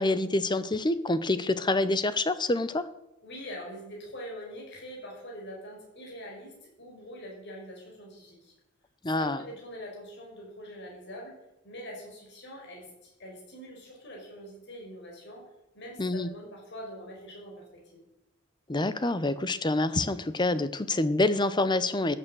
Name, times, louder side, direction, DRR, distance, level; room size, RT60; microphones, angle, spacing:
voice 1, 0.0-2.9 9.0-9.4 16.0-16.3 18.7-22.2, left 2 dB, 20° left, 14 dB, 0.8 m, -27 dB
voice 2, 3.2-8.5 9.2-17.6 17.9-18.0, equal, 55° left, -1 dB, 5.7 m, -44 dB
15.0 x 9.1 x 8.0 m, 0.89 s
head